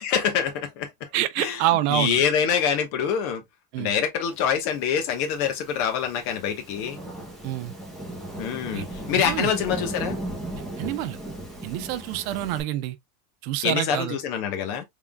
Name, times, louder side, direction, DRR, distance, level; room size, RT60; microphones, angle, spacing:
voice 1, 0.1-0.9 1.4-1.6 1.9-3.4 3.8-7.0 8.4-10.2 13.6-14.8, left 8 dB, 55° left, 1.2 m, -25 dB
voice 2, 1.1-2.2 3.7-3.9 7.4-7.7 8.7-8.9 9.2-9.5 10.8-11.2 11.6-13.0 13.4-14.2, right 14 dB, 65° right, 0.7 m, -27 dB
Thunderstorm / Rain, 4.9-12.6, right 1 dB, ahead, 1.0 m, -36 dB
3.6 x 3.6 x 2.3 m
supercardioid pair, 145°, 45 cm